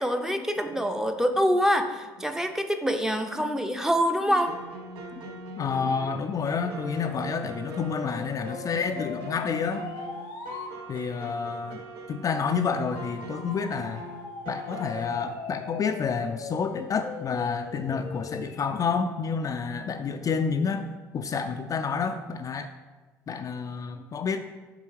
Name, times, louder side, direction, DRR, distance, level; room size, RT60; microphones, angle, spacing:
voice 1, 0.0-4.5, equal, 5° right, 6 dB, 0.6 m, -25 dB
sound 1, 4.0-15.1, right 1 dB, 65° right, 0.7 m, -41 dB
voice 2, 5.1-9.9 10.9-11.8 12.1-14.0 14.5-22.7 23.3-24.4, left 5 dB, 35° left, 6 dB, 0.4 m, -29 dB
sound 2, 5.5-10.7 12.9-18.8, left 4 dB, 75° left, 0.8 m, -40 dB
7.6 x 3.5 x 4.7 m, 1.3 s
hypercardioid pair, 60°, 10 cm